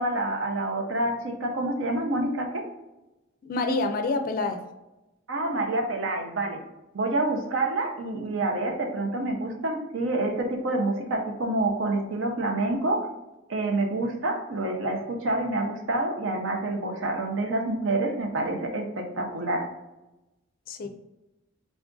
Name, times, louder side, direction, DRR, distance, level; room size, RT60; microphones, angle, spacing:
voice 1, 0.0-2.6 5.3-6.6 6.9-13.1 13.5-19.7, right 2 dB, 70° right, 3 dB, 0.7 m, -27 dB
voice 2, 3.4-4.6 20.7-20.9, left 3 dB, 45° left, 7 dB, 0.4 m, -27 dB
3.6 x 2.4 x 3.7 m, 0.99 s
head